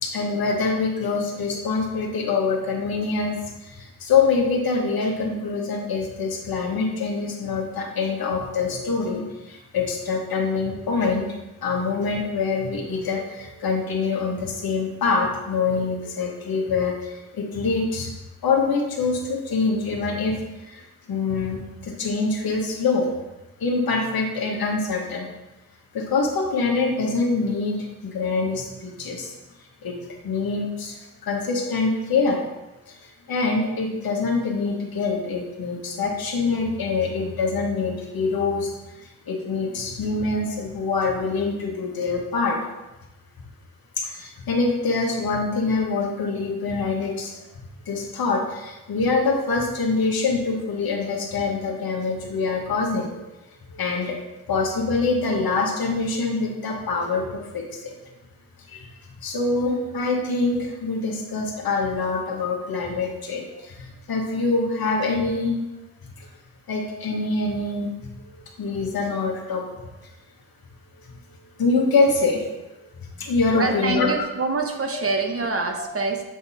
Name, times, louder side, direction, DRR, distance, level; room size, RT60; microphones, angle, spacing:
voice 1, 0.0-3.4 3.6-11.3 11.6-18.1 18.4-23.1 23.6-25.3 25.9-29.3 29.8-30.0 30.2-32.4 32.9-42.6 44.0-47.4 47.9-53.3 53.7-54.2 54.5-58.0 58.7-58.9 59.2-65.5 66.2-66.3 66.7-69.9 71.6-72.4 73.2-74.1 75.8-75.9, left 4 dB, 70° left, 0 dB, 1.4 m, -25 dB
voice 2, 73.5-76.2, right 3 dB, 40° right, 3 dB, 1.1 m, -25 dB
7.7 x 3.6 x 4.2 m, 1.0 s
cardioid pair, 55°, 37 cm